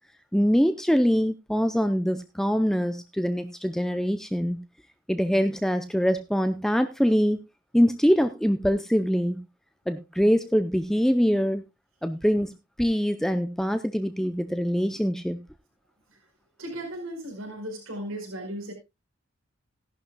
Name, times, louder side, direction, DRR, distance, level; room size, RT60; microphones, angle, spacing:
voice 1, 0.3-4.6 5.1-7.4 7.7-9.4 9.9-11.6 12.0-12.5 12.8-15.4, equal, ahead, 9 dB, 0.5 m, -24 dB
voice 2, 16.6-18.7, right 1 dB, 85° right, 3 dB, 4.9 m, -36 dB
16.5 x 11.5 x 2.2 m, 0.23 s
head